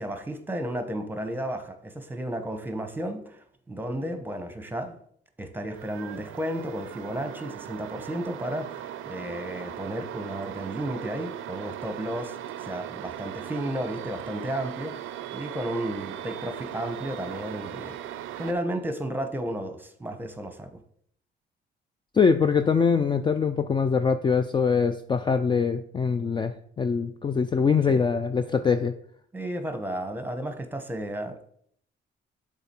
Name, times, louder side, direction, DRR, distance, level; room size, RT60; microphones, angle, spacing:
voice 1, 0.0-5.0 5.4-14.9 15.3-18.0 18.4-20.8 27.9-28.1 29.3-31.5, right 1 dB, 10° right, 8 dB, 0.9 m, -33 dB
sound 1, 5.7-18.5, right 11 dB, 85° right, 0.5 m, -38 dB
voice 2, 22.1-28.9, left 5 dB, 25° left, 9 dB, 0.3 m, -23 dB
7.0 x 4.0 x 4.4 m, 0.64 s
cardioid pair, 90°, 20 cm